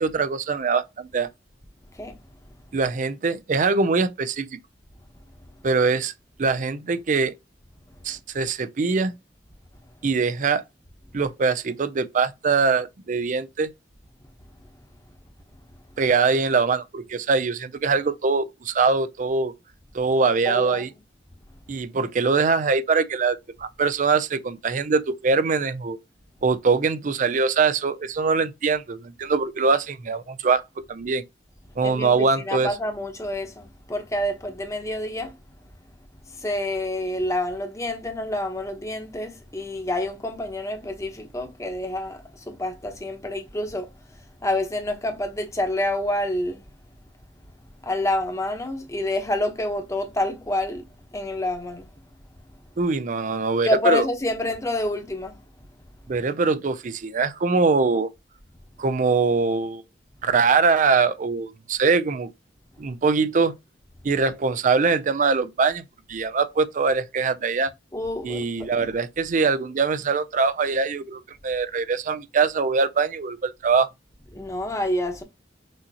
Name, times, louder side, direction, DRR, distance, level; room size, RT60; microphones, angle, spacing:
voice 1, 0.0-1.3 2.7-4.6 5.6-6.1 6.4-7.3 8.0-9.1 10.0-10.6 11.1-13.7 16.0-19.5 19.9-20.9 21.7-26.0 26.4-30.6 30.9-31.2 31.8-32.7 52.8-54.0 56.1-58.1 58.8-59.8 60.2-62.3 62.8-63.5 64.0-67.7 68.2-73.9, right 4 dB, 45° right, 0.4 m, -23 dB
voice 2, 20.4-20.9 31.8-35.3 36.3-46.7 47.8-51.9 53.6-55.4 67.9-68.4 74.3-75.2, left 1 dB, 15° left, 0.9 m, -28 dB
6.2 x 2.8 x 2.8 m
head